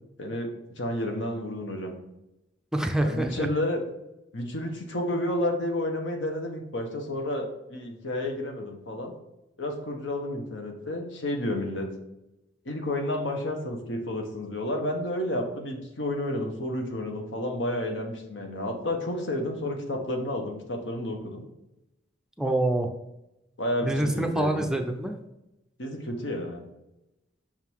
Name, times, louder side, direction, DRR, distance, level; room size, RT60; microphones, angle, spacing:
voice 1, 0.8-1.9 3.0-3.8 4.3-9.1 9.6-11.9 12.6-21.4 23.6-24.7 25.8-26.6, left 1 dB, 80° left, 3 dB, 1.2 m, -31 dB
voice 2, 2.7-3.5 22.4-22.9 23.8-25.2, right 1 dB, 5° right, 4 dB, 0.4 m, -26 dB
5.9 x 3.8 x 4.6 m, 0.91 s
head